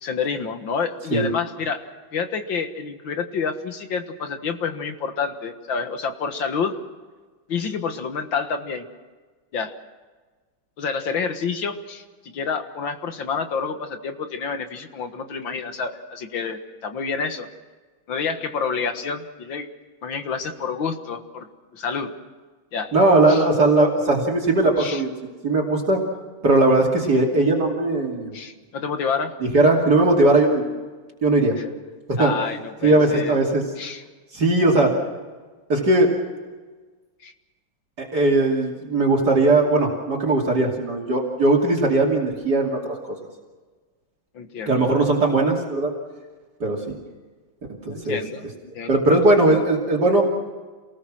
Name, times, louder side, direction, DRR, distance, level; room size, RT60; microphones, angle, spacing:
voice 1, 0.0-1.8 2.1-6.8 7.5-8.9 9.5-9.8 10.8-17.5 18.1-19.7 20.0-21.5 21.7-22.2 22.7-23.0 23.3-23.4 24.8-25.0 28.3-29.3 31.6-31.7 32.2-33.4 33.8-34.0 37.2-37.3 44.3-44.9 47.9-48.5 48.7-49.2, left 5 dB, 75° left, 7 dB, 2.2 m, -28 dB
voice 2, 22.9-25.1 25.4-26.0 26.4-28.4 29.4-30.7 31.2-31.6 32.1-32.3 32.8-33.6 34.3-34.9 35.7-36.1 38.0-43.2 44.7-45.9 46.6-47.0 47.9-48.2 48.9-50.2, right 2 dB, 55° right, -2 dB, 3.4 m, -19 dB
28.0 x 19.5 x 6.2 m, 1.4 s
omnidirectional pair, 2.2 m